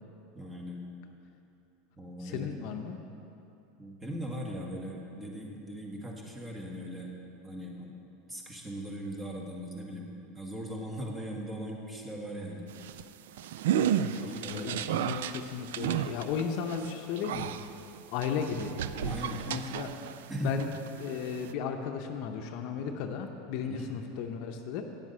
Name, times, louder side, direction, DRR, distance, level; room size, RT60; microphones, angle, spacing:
voice 1, 0.3-0.9 2.0-2.5 3.8-7.1 7.4-7.9 8.3-10.1 10.3-12.7 14.2-14.7 19.0-19.4 20.0-20.6 23.6-23.9, equal, 15° right, -1 dB, 1.7 m, -39 dB
voice 2, 2.2-3.0 14.1-17.8 18.1-18.7 19.0-19.9 20.4-20.7 21.0-24.9, left 7 dB, 60° left, 5 dB, 0.7 m, -35 dB
sound 1, 12.7-20.3 20.6-21.5, right 10 dB, 80° right, 0.3 m, -33 dB
9.0 x 7.6 x 5.6 m, 2.8 s
supercardioid pair, 115°, 0 cm